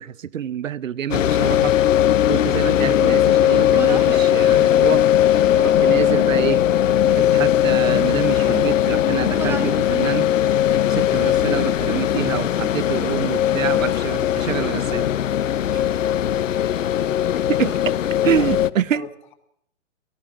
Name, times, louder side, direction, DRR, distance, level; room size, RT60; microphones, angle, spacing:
voice 1, 0.0-1.7 2.3-5.0 5.6-6.6 7.2-10.3 10.9-15.1 15.7-15.8 17.5-18.0 18.2-19.1, right 9 dB, 85° right, 0.8 m, -26 dB
sound 1, 1.1-18.7, left 11 dB, 75° left, 0.8 m, -19 dB
Human voice, 3.6-4.4 5.3-6.2 6.7-7.3 8.0-8.9 9.3-9.9 10.3-11.0, right 4 dB, 5° right, 1.1 m, -37 dB
voice 2, 16.8-17.3 18.4-19.3, left 9 dB, 40° left, 2.4 m, -38 dB
27.5 x 17.5 x 6.1 m
hypercardioid pair, 150°, 38 cm